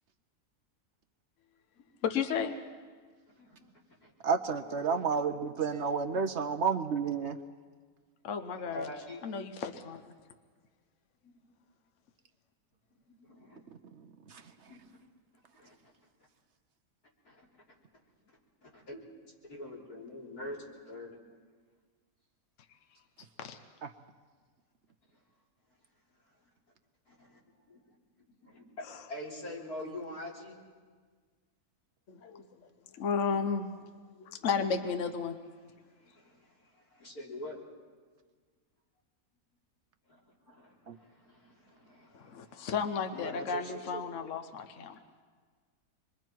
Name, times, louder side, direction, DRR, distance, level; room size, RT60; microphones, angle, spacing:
voice 1, 2.0-2.5 8.2-8.9 9.2-10.1 23.4-23.6 32.1-32.4 33.0-33.7 34.3-35.4 42.1-45.0, left 6 dB, 60° left, 7 dB, 1.2 m, -33 dB
voice 2, 3.4-3.7 4.0-4.1 5.0-5.1 5.7-5.9 8.5-9.2 11.2-11.4 13.2-13.6 14.2-14.4 14.7-14.9 15.5-15.8 17.2-17.6 18.6-19.0 19.4-21.2 25.1-25.2 27.1-27.4 27.7-27.8 28.4-30.6 35.8-37.6 40.1-42.7 43.1-44.1, left 1 dB, 85° left, -4 dB, 4.1 m, -45 dB
voice 3, 4.2-7.4 14.3-14.4 23.8-23.9 40.9-41.0, right 5 dB, 55° right, 6 dB, 0.9 m, -30 dB
26.5 x 22.5 x 4.6 m, 1.5 s
omnidirectional pair, 1.6 m